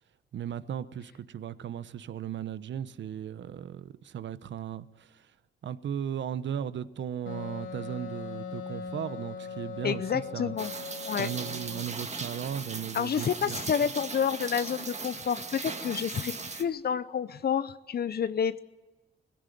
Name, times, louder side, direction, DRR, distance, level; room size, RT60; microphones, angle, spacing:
voice 1, 0.3-5.3 5.6-10.6 11.2-13.9, right 9 dB, 75° right, 0.9 m, -36 dB
Wind instrument woodwind instrument, 7.3-11.9, left 5 dB, 85° left, 3.6 m, -40 dB
voice 2, 9.8-10.7 11.1-11.3 12.9-18.6, left 7 dB, 55° left, 0.7 m, -29 dB
Rain, 10.6-16.6, right 4 dB, 35° right, 1.8 m, -38 dB
20.5 x 15.5 x 9.2 m
cardioid pair, 75°, 19 cm